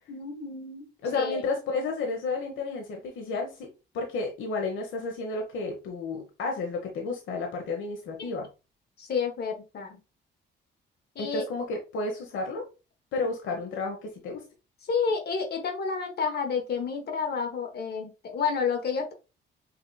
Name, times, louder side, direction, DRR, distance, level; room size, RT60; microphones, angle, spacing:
voice 1, 0.1-1.4 9.0-10.0 11.1-11.5 14.8-19.1, left 5 dB, 55° left, 1.1 m, -30 dB
voice 2, 1.0-3.7 3.9-8.5 11.2-12.7 13.1-14.4, left 3 dB, 80° left, 1.1 m, -32 dB
5.8 x 2.8 x 2.2 m
cardioid pair, 90°, 20 cm